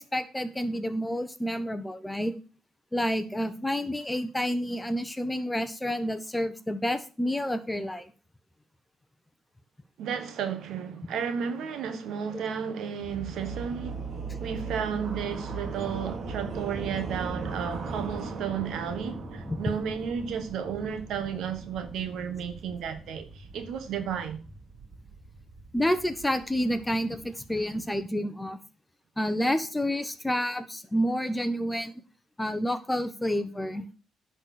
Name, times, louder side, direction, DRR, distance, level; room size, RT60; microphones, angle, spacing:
voice 1, 0.0-2.3 2.9-8.1 12.3-12.4 19.5-19.6 25.7-28.6 29.2-31.9 32.4-34.0, equal, 10° left, 1.0 m, -29 dB
voice 2, 10.0-14.1 14.4-24.4, right 7 dB, 75° right, 1.5 m, -33 dB
sound 1, 13.0-27.9, right 3 dB, 60° right, 2.1 m, -39 dB
10.5 x 4.3 x 6.7 m
cardioid pair, 90°, 0 cm